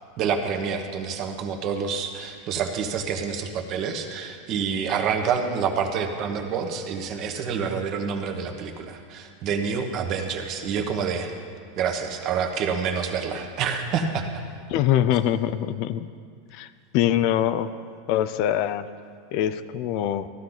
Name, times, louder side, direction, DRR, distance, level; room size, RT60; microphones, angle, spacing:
voice 1, 0.2-11.3 11.8-14.3, right 6 dB, 40° right, 4 dB, 1.3 m, -27 dB
voice 2, 14.7-16.1 16.5-16.7 16.9-17.7 18.1-18.9 19.3-20.3, left 11 dB, 50° left, 13 dB, 0.4 m, -23 dB
14.5 x 12.0 x 4.0 m, 2.1 s
supercardioid pair, 135°, 0 cm